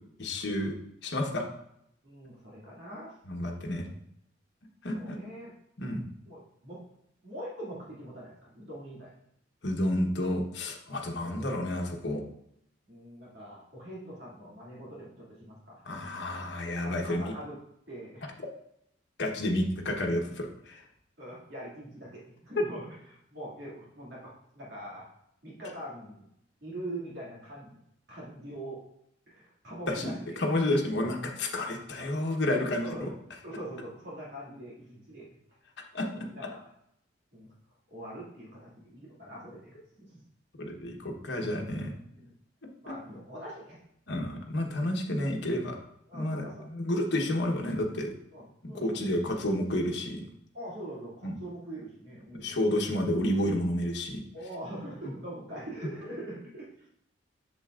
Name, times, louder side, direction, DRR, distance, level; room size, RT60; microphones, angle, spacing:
voice 1, 0.2-0.7 1.0-1.4 3.3-3.9 4.8-5.2 5.8-6.0 9.6-12.2 15.9-17.3 19.2-20.8 29.9-30.1 30.4-33.1 35.9-36.1 40.6-41.9 44.1-45.8 46.1-48.1 48.7-50.3 51.2-51.3 52.3-54.2, left 1 dB, 60° left, 1 dB, 1.2 m, -30 dB
voice 2, 2.0-3.2 3.5-3.9 4.9-5.6 6.3-6.8 7.2-9.1 11.2-11.5 12.9-15.8 16.8-17.6 17.9-18.3 21.2-25.1 25.4-26.3 26.6-27.8 28.1-28.8 29.3-30.4 32.8-33.1 33.4-35.3 36.1-36.7 37.3-37.5 37.9-40.2 42.1-42.3 42.8-43.8 46.1-46.7 48.3-49.3 50.5-52.6 54.3-56.9, right 1 dB, 60° right, -5 dB, 2.4 m, -43 dB
7.9 x 7.1 x 2.5 m, 0.76 s
head